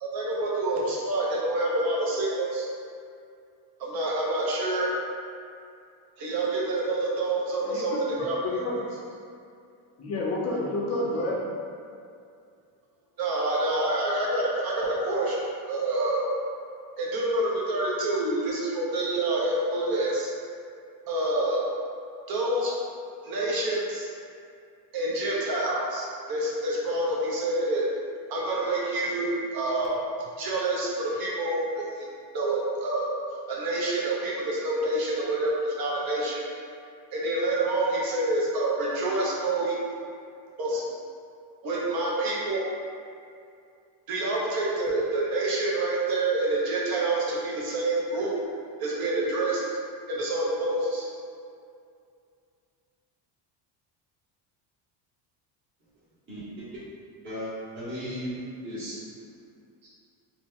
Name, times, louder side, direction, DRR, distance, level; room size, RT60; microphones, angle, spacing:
voice 1, 0.0-2.7 3.8-4.9 6.2-7.9 8.2-8.7 13.2-15.4 15.7-16.3 17.0-20.3 21.1-21.6 22.3-22.7 23.2-24.1 24.9-27.8 28.3-29.9 30.4-31.8 32.3-33.1 33.5-36.4 37.1-39.7 40.6-40.8 41.6-42.6 44.1-48.3 48.8-49.6 50.1-51.1, right 2 dB, 50° right, -5 dB, 0.8 m, -27 dB
voice 2, 7.6-8.0 8.4-8.8 10.0-11.4, left 2 dB, 35° left, -4 dB, 0.6 m, -29 dB
voice 3, 56.3-56.8 57.2-58.3 58.6-58.9 59.8-59.9, equal, 25° right, -13 dB, 0.9 m, -36 dB
3.0 x 2.1 x 3.5 m, 2.4 s
cardioid pair, 135°, 46 cm